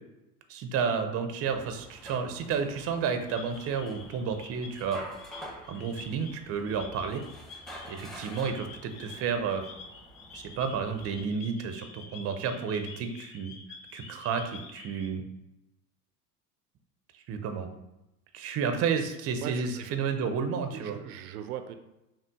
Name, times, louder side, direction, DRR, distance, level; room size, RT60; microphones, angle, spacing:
voice 1, 0.5-5.0 5.7-7.2 7.9-9.6 10.3-13.5 13.9-15.2 17.3-17.7 18.3-21.0, right 6 dB, 30° right, 7 dB, 0.6 m, -31 dB
sound 1, 1.5-11.2, equal, ahead, 0.8 m, -48 dB
sound 2, 3.3-15.1, left 4 dB, 45° left, 1.0 m, -49 dB
voice 2, 19.4-20.0 20.7-21.7, right 10 dB, 70° right, 8 dB, 0.6 m, -39 dB
5.8 x 2.3 x 3.5 m, 0.93 s
hypercardioid pair, 80°, 47 cm